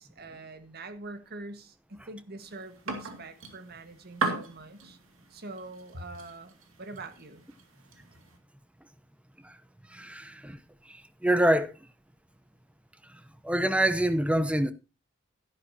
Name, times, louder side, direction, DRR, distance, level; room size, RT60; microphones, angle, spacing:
voice 1, 0.0-5.0 5.3-7.4, right 2 dB, 50° right, 1.5 m, -44 dB
sound 1, 2.4-8.4, right 3 dB, 80° right, 2.4 m, -38 dB
voice 2, 9.9-10.6 10.9-11.7 13.1-14.7, right 1 dB, 5° right, 0.8 m, -26 dB
12.5 x 11.0 x 2.8 m
head